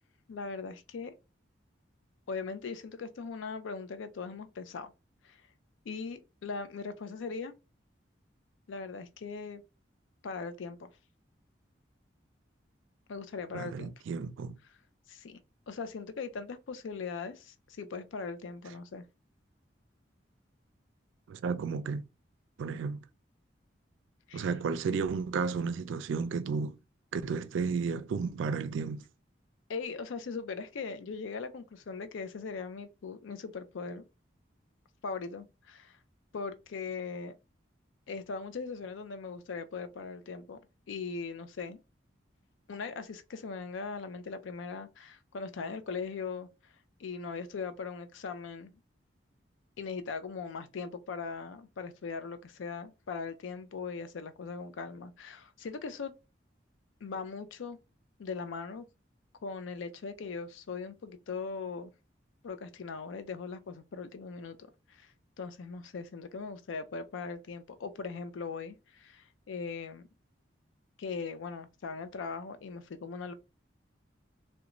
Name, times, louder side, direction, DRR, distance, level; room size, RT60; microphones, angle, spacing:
voice 1, 0.3-1.1 2.3-4.9 5.2-5.4 5.9-7.5 8.7-9.6 10.2-10.9 13.1-13.9 15.1-15.4 15.7-19.0 24.3-24.5 29.7-34.0 35.0-36.0 36.3-37.3 38.1-40.6 40.9-41.8 42.7-46.7 47.0-48.7 49.8-56.1 57.0-57.8 58.2-58.8 59.4-61.9 62.4-70.1 71.0-73.3, left 4 dB, 90° left, 0.4 m, -40 dB
voice 2, 13.5-14.6 21.3-22.0 22.6-23.0 24.3-26.8 27.1-29.0, right 5 dB, 85° right, 0.3 m, -33 dB
2.5 x 2.2 x 2.9 m
head